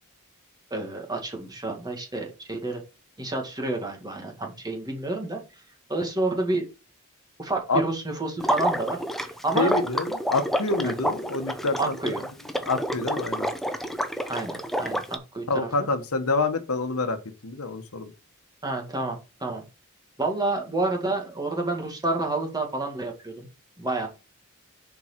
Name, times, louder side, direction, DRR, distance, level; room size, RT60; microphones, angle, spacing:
voice 1, 0.7-2.8 3.2-5.4 5.9-6.7 7.4-9.7 10.8-10.9 11.8-12.2 14.3-15.4 15.8-15.9 18.6-19.6 20.2-23.5 23.8-24.1, right 2 dB, 20° right, 2.0 m, -29 dB
Water / Liquid, 8.4-15.2, equal, ahead, 0.7 m, -29 dB
voice 2, 9.5-12.1 12.7-13.5 15.5-17.2 17.4-18.1, left 3 dB, 80° left, 1.2 m, -27 dB
6.9 x 4.8 x 5.9 m
head